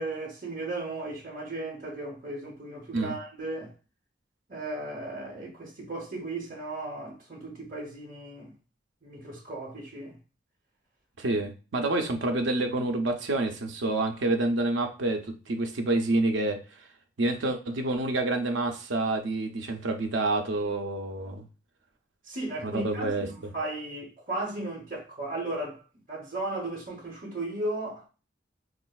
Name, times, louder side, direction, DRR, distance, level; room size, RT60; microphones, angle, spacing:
voice 1, 0.0-3.7 4.5-8.5 9.0-10.2 22.2-25.8 26.1-28.0, right 2 dB, 45° right, 0.9 m, -35 dB
voice 2, 11.2-16.6 17.2-21.4 22.6-23.3, right 2 dB, 85° right, 0.6 m, -28 dB
4.1 x 2.5 x 2.3 m
head